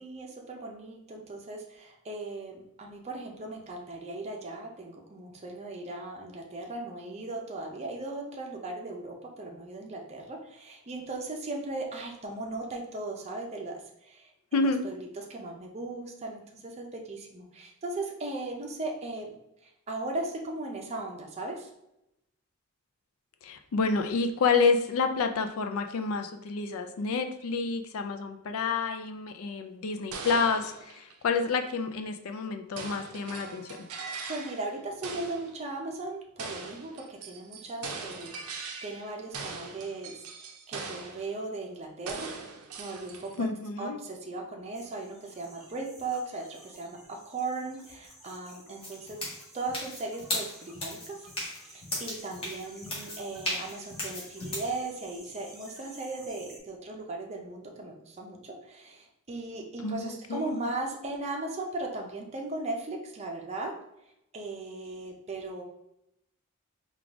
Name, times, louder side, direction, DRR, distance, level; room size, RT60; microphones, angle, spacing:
voice 1, 0.0-19.3 19.9-21.7 34.3-42.3 42.8-43.5 43.8-49.2 49.5-63.7 64.3-65.6, right 2 dB, 30° right, 0 dB, 0.5 m, -38 dB
voice 2, 14.5-14.8 23.4-33.6 43.4-44.0 59.8-60.6, left 4 dB, 70° left, 7 dB, 0.4 m, -29 dB
sound 1, 30.1-31.5 32.8-34.7 35.0-35.6 36.4-39.1 39.3-41.3 42.1-43.5, right 4 dB, 85° right, 0.5 m, -41 dB
sound 2, 44.7-56.6, equal, ahead, 0.9 m, -53 dB
sound 3, 48.8-54.7, left 1 dB, 25° left, 1.0 m, -36 dB
3.8 x 2.4 x 3.4 m, 0.84 s
head